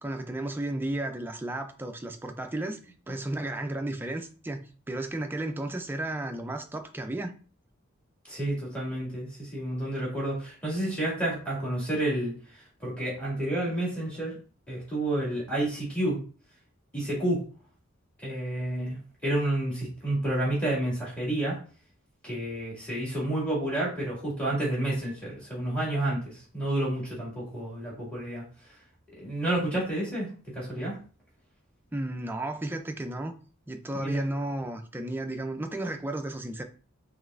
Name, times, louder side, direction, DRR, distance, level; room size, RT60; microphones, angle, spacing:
voice 1, 0.0-2.8 3.1-4.6 4.9-7.3 31.9-33.4 33.7-36.6, right 1 dB, 10° right, 0.4 m, -33 dB
voice 2, 8.3-14.4 14.7-16.2 16.9-17.5 18.2-21.6 22.2-28.4 29.2-30.3 30.5-31.0 33.9-34.2, right 1 dB, 5° left, 2.0 m, -30 dB
5.1 x 3.2 x 2.5 m
head